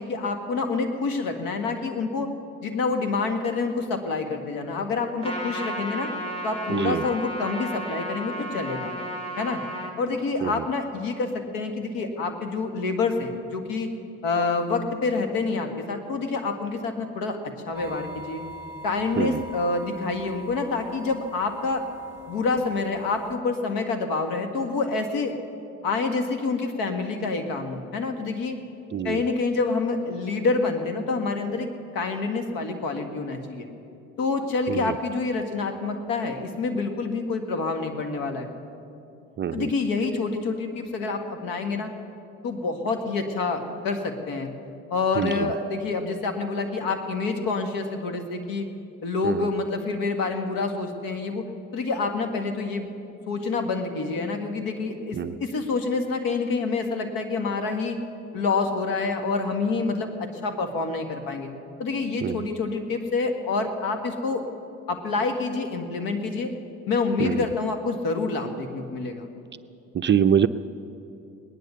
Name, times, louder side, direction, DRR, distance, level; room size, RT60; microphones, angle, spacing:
voice 1, 0.0-2.3 2.6-6.1 6.4-9.0 9.4-9.6 10.0-13.9 14.2-17.4 17.7-18.4 18.8-21.8 22.3-25.3 25.8-28.6 29.0-31.7 31.9-33.7 34.2-38.5 39.5-41.9 42.4-44.5 44.9-48.7 49.0-51.4 51.7-52.9 53.3-58.0 58.3-61.5 61.8-64.4 64.9-66.5 66.9-69.3, left 4 dB, 65° left, 6 dB, 1.9 m, -27 dB
Trumpet, 5.2-9.9, equal, 15° left, 2.8 m, -33 dB
voice 2, 6.7-7.1 10.4-10.6 19.2-19.4 28.9-29.2 34.7-35.0 39.4-39.7 45.2-45.5 49.2-49.5 55.1-55.4 62.2-62.5 67.2-67.5 69.9-70.5, right 8 dB, 30° right, 11 dB, 0.5 m, -25 dB
sound 1, 17.7-23.4, right 1 dB, 5° right, 2.6 m, -42 dB
19.0 x 10.5 x 6.9 m, 2.6 s
hypercardioid pair, 60°, 37 cm